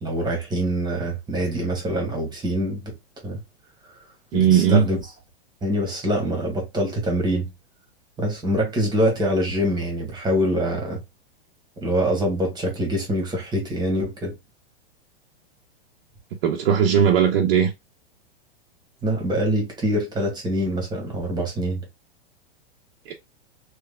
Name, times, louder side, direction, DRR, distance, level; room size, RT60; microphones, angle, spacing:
voice 1, 0.0-2.9 3.2-3.4 4.3-5.0 5.6-7.5 8.2-11.0 11.8-14.3 19.0-21.8, equal, 15° right, 1.6 m, -24 dB
voice 2, 4.3-4.9 16.4-17.7 23.1-23.2, right 8 dB, 60° right, 0.8 m, -18 dB
3.5 x 3.2 x 2.2 m
hypercardioid pair, 125°, 32 cm